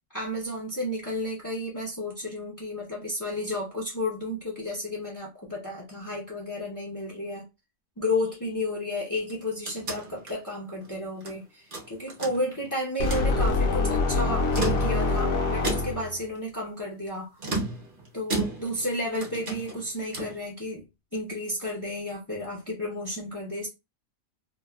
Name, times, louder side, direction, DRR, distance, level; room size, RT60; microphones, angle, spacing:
voice 1, 0.1-7.5 8.0-17.3 18.1-23.7, left 1 dB, 25° left, 0.4 m, -32 dB
sound 1, 9.2-11.4 11.7-12.7 13.0-13.3 14.3-15.2 15.6-16.2 17.4-18.9 19.2-20.4, right 3 dB, 45° right, 0.8 m, -34 dB
sound 2, 13.0-16.2, left 3 dB, 65° left, 0.9 m, -25 dB
2.9 x 2.2 x 2.3 m
omnidirectional pair, 1.5 m